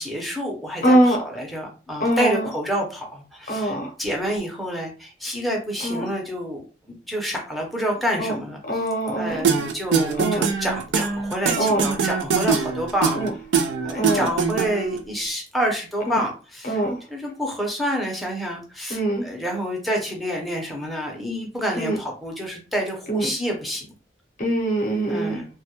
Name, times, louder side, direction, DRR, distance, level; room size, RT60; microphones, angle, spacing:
voice 1, 0.0-6.6 6.9-8.6 9.2-13.2 13.8-16.8 17.1-23.9 25.1-25.4, equal, ahead, -1 dB, 0.5 m, -28 dB
voice 2, 0.8-1.2 2.0-2.5 3.5-3.9 5.8-6.0 8.2-8.3 8.6-9.4 10.2-10.5 11.6-11.8 13.1-13.3 13.9-14.3 16.1-16.2 16.6-17.0 18.9-19.2 21.8-22.0 23.1-23.3 24.4-25.4, right 1 dB, 45° left, 1 dB, 0.6 m, -22 dB
sound 1, 9.4-15.0, right 6 dB, 90° right, 0.4 m, -23 dB
2.2 x 2.1 x 2.8 m, 0.35 s
head